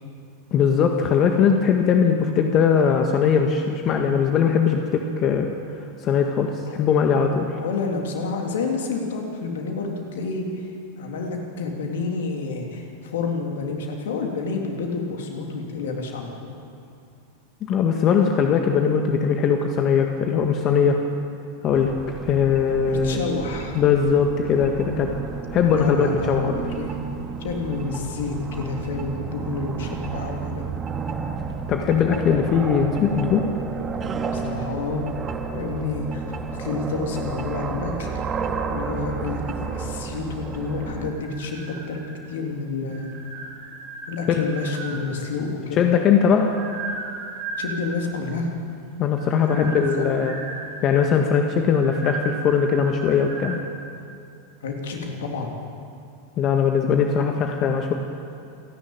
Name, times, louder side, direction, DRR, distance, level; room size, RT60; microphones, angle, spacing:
voice 1, 0.5-5.5 6.0-7.5 17.6-21.0 21.6-21.9 22.2-23.2 23.8-25.2 25.5-26.5 31.7-33.4 44.4-44.5 45.8-46.5 49.0-50.3 50.8-53.6 56.4-57.9, left 7 dB, 40° left, 3 dB, 1.8 m, -20 dB
voice 2, 7.6-10.6 11.0-16.3 22.9-23.7 25.7-27.0 27.4-30.7 34.3-35.1 35.5-38.1 38.7-42.0 42.3-43.1 44.1-45.8 47.6-48.5 49.4-50.1 54.6-55.5, left 4 dB, 70° left, 2 dB, 3.3 m, -29 dB
sound 1, 21.7-41.1, right 5 dB, 30° right, 2.7 m, -32 dB
sound 2, 40.6-42.4 42.8-45.3 46.0-48.1 49.1-53.6, right 3 dB, 50° right, 3.4 m, -36 dB
28.0 x 11.0 x 9.1 m, 2.5 s
hypercardioid pair, 90°, 0 cm